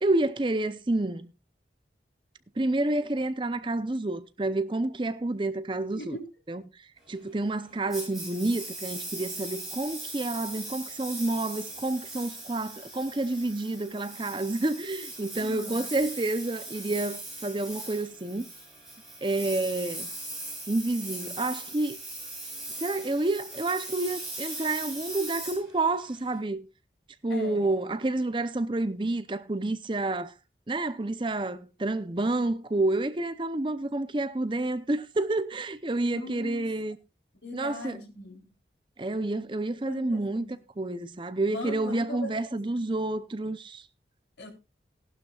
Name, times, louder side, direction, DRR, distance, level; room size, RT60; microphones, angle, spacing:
voice 1, 0.0-1.3 2.6-6.2 6.5-6.6 7.1-18.5 19.2-20.1 20.7-22.0 22.8-26.6 27.2-30.3 30.7-37.0 37.5-38.0 39.0-43.9, right 2 dB, 25° right, 0.6 m, -29 dB
voice 2, 6.0-6.3 15.4-15.9 27.3-27.7 36.1-36.7 37.4-38.5 39.9-40.6 41.5-42.9 44.4-44.5, left 2 dB, 75° left, 3.8 m, -39 dB
Engine, 7.9-26.4, right 2 dB, ahead, 7.4 m, -40 dB
18.0 x 12.0 x 2.4 m
head